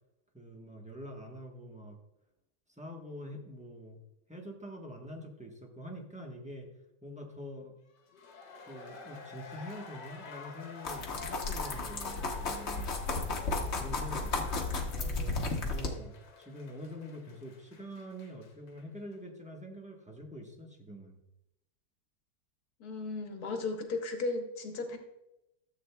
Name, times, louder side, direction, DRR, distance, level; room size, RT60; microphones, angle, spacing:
voice 1, 0.3-2.0 2.8-4.0 4.3-6.7 7.0-7.7 8.7-13.0 13.8-14.3 14.9-21.2, equal, 5° right, 1 dB, 0.8 m, -45 dB
sound 1, 8.0-18.8 19.1-19.2, left 5 dB, 85° left, 1.7 m, -50 dB
sound 2, 10.8-15.9, left 3 dB, 45° left, 1.1 m, -34 dB
voice 2, 22.8-25.0, left 3 dB, 65° left, 4 dB, 1.5 m, -35 dB
13.5 x 7.8 x 2.2 m, 0.89 s
omnidirectional pair, 1.8 m